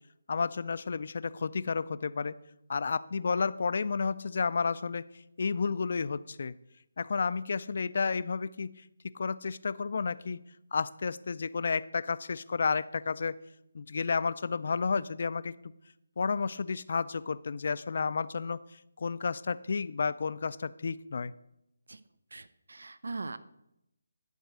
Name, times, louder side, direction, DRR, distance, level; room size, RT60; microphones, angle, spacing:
voice 1, 0.3-2.3 2.7-5.0 5.4-6.5 7.0-8.7 9.1-10.4 10.7-13.4 13.7-15.5 16.2-18.6 19.0-21.3, left 5 dB, 55° left, 16 dB, 0.4 m, -31 dB
voice 2, 22.3-23.4, right 3 dB, 75° right, 14 dB, 0.5 m, -40 dB
10.5 x 4.5 x 6.3 m, 0.84 s
figure-of-eight pair, 155°, 0 cm